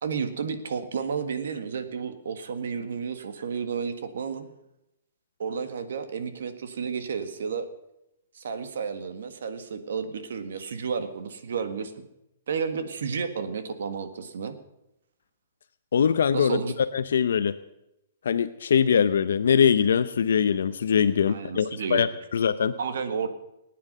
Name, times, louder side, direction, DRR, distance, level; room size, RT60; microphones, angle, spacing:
voice 1, 0.0-4.5 5.4-7.7 8.3-12.0 12.5-14.5 16.3-16.7 21.2-22.1 22.8-23.3, right 6 dB, 65° right, 9 dB, 1.7 m, -32 dB
voice 2, 15.9-16.6 16.9-17.5 18.2-22.1 22.3-22.7, left 7 dB, 70° left, 10 dB, 0.7 m, -22 dB
19.0 x 9.5 x 6.7 m, 0.88 s
hypercardioid pair, 180°, 0 cm